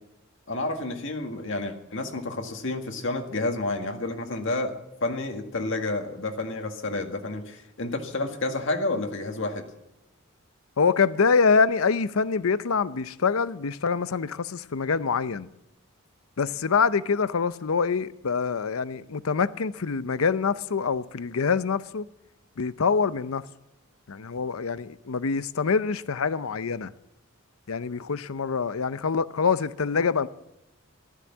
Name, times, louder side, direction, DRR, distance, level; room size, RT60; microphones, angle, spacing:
voice 1, 0.5-4.7 5.0-9.6, left 2 dB, 60° left, 1.7 m, -30 dB
voice 2, 10.8-15.5 16.4-22.1 22.6-23.4 24.1-26.9 27.7-30.3, left 5 dB, 85° left, 0.6 m, -25 dB
14.5 x 13.0 x 7.2 m
head